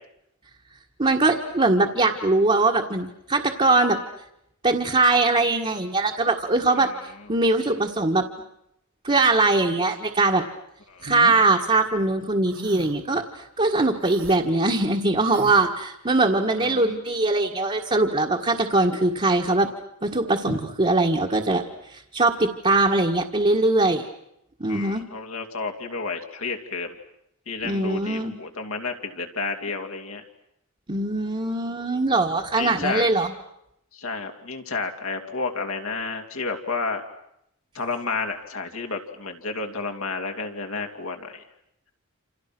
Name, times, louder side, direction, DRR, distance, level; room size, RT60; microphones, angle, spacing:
voice 1, 1.0-4.0 4.6-6.9 7.3-8.3 9.0-10.4 11.0-19.7 20.0-21.6 21.9-24.0 24.6-25.0 27.6-28.3 30.9-33.3, right 2 dB, 30° right, -1 dB, 1.7 m, -21 dB
sound 1, 11.0-11.4 12.5-13.0 14.0-14.4 15.3-15.7, right 2 dB, 65° right, 2.4 m, -39 dB
voice 2, 16.5-16.9 20.5-20.6 24.7-27.0 27.5-30.2 32.6-33.0 33.9-37.0 37.7-41.4, left 4 dB, 75° left, 3 dB, 2.9 m, -31 dB
29.0 x 27.5 x 6.2 m, 0.78 s
head